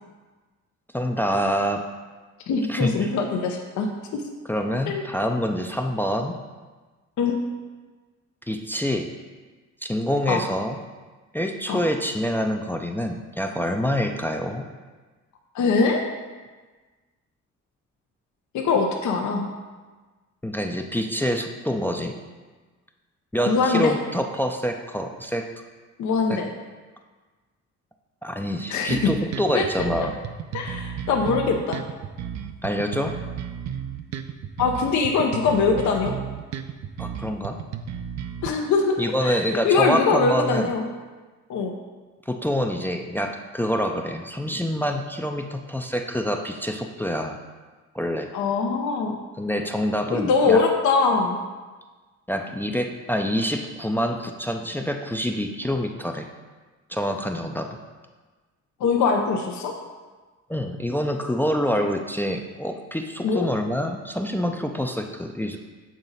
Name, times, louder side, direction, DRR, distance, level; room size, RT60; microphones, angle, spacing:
voice 1, 0.9-1.8 2.7-3.1 4.5-6.3 8.5-9.1 9.8-10.8 11.3-14.7 20.4-22.2 23.3-25.5 26.3-26.4 28.2-30.2 32.6-33.2 37.0-37.6 39.0-40.7 42.3-47.4 47.9-48.3 49.4-50.6 52.3-56.3 56.9-57.8 60.5-65.6, equal, 5° left, 4 dB, 0.4 m, -26 dB
voice 2, 2.5-4.2 4.9-5.0 7.2-7.4 10.3-10.4 11.7-11.8 15.5-16.0 18.5-19.5 23.5-24.0 26.0-26.5 28.7-29.1 29.5-29.6 30.5-31.8 34.6-36.2 38.4-38.9 39.2-40.9 41.5-41.7 48.3-49.2 50.1-51.4 58.8-59.7 63.2-63.5, left 4 dB, 70° left, 2 dB, 0.7 m, -22 dB
sound 1, 28.9-38.5, right 8 dB, 60° right, 0.5 m, -33 dB
7.4 x 4.0 x 4.0 m, 1.3 s
cardioid pair, 90°, 30 cm